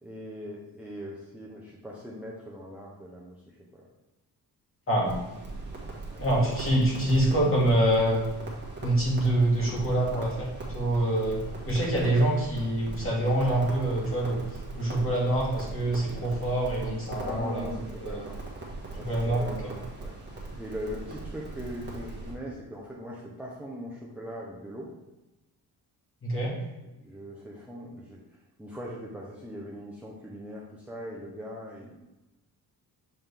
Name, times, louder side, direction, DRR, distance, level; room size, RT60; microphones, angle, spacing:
voice 1, 0.0-3.3 3.7-3.8 6.1-6.2 17.2-18.4 19.0-19.7 20.0-24.9 27.0-28.2 28.6-32.0, equal, 5° right, -4 dB, 0.8 m, -40 dB
voice 2, 4.9-5.2 6.2-8.2 8.8-14.4 14.7-18.2 19.0-19.7 26.2-26.6, right 1 dB, 35° left, -4 dB, 2.1 m, -26 dB
Crackle, 5.0-22.3, right 3 dB, 25° right, 1.6 m, -40 dB
7.5 x 3.8 x 3.5 m, 1.0 s
cardioid pair, 120°, 40 cm